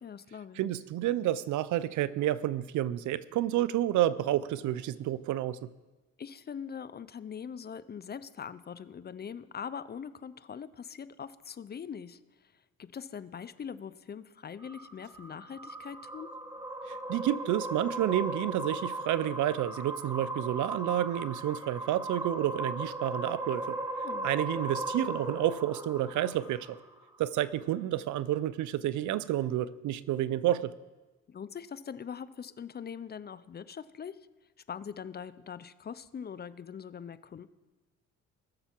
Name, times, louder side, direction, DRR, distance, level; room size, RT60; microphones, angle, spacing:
voice 1, 0.0-0.6 6.2-12.5 12.8-16.3 24.0-24.3 31.3-34.2 34.7-37.5, left 7 dB, 35° left, 16 dB, 0.5 m, -42 dB
voice 2, 0.6-5.7 16.9-23.8 24.2-26.8 27.2-30.7, right 13 dB, 75° right, 17 dB, 0.5 m, -30 dB
sound 1, 14.6-27.1, right 2 dB, 15° right, 1.6 m, -37 dB
19.5 x 6.7 x 4.5 m, 1.2 s
cardioid pair, 90°, 30 cm